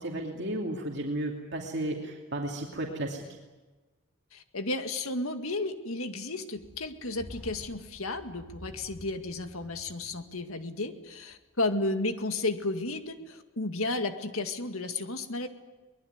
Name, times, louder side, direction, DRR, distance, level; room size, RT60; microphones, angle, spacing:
voice 1, 0.0-3.2, right 1 dB, 50° right, 0 dB, 2.8 m, -33 dB
voice 2, 4.3-15.5, left 2 dB, 75° left, 7 dB, 2.1 m, -33 dB
sound 1, 6.6-10.8 11.2-11.3 12.0-12.7 13.1-13.2, equal, 5° left, 4.9 m, -50 dB
23.5 x 20.5 x 9.6 m, 1.2 s
head